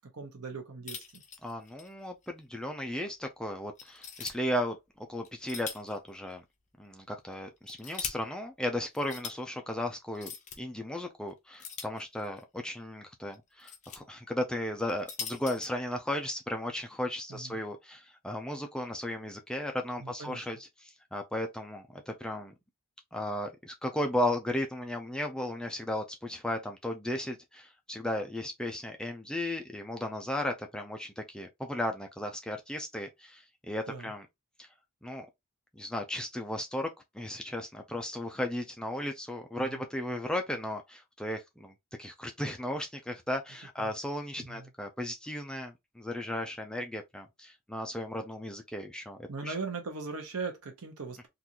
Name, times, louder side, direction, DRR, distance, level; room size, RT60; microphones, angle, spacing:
voice 1, 0.1-1.2 17.3-17.6 20.0-20.5 33.9-34.1 39.6-39.8 43.8-43.9 44.4-44.7 49.3-51.3, right 4 dB, 90° right, 0.9 m, -39 dB
sound 1, 0.9-1.9 2.2-2.3 2.9-3.0 3.8-4.3 5.2-6.0 6.3-6.4 7.3-8.1 8.9-9.4 10.1-10.6 11.6-12.4 13.3-14.0 14.8-15.7, left 6 dB, 35° left, 0.7 m, -41 dB
voice 2, 1.4-6.4 6.8-10.3 10.6-22.5 23.1-34.3 34.6-34.7 35.0-35.3 35.8-36.9 37.1-41.7 42.0-49.5, left 1 dB, 5° left, 0.4 m, -35 dB
3.8 x 2.5 x 2.9 m
head